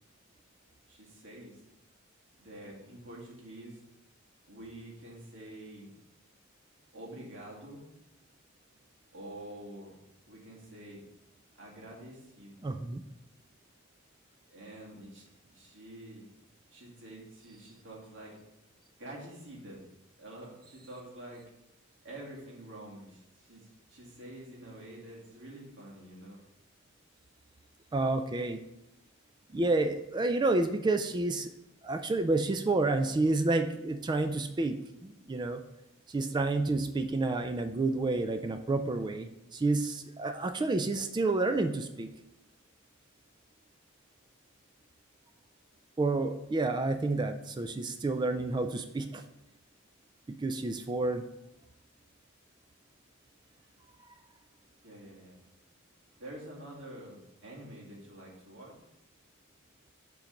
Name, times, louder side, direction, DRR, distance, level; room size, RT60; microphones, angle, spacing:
voice 1, 0.9-1.6 2.4-3.8 4.5-5.9 6.9-7.8 9.1-10.0 10.3-11.0 11.6-12.7 14.5-15.2 15.5-16.3 16.7-18.4 19.0-19.8 20.2-21.4 22.0-26.4 54.8-55.4 56.2-58.7, right 1 dB, 60° right, -4 dB, 2.2 m, -47 dB
voice 2, 12.6-13.0 27.9-28.6 29.5-31.5 31.8-35.6 36.1-42.1 46.0-49.2 50.3-51.2, right 2 dB, 20° right, 8 dB, 0.3 m, -29 dB
7.3 x 3.9 x 5.1 m, 0.88 s
head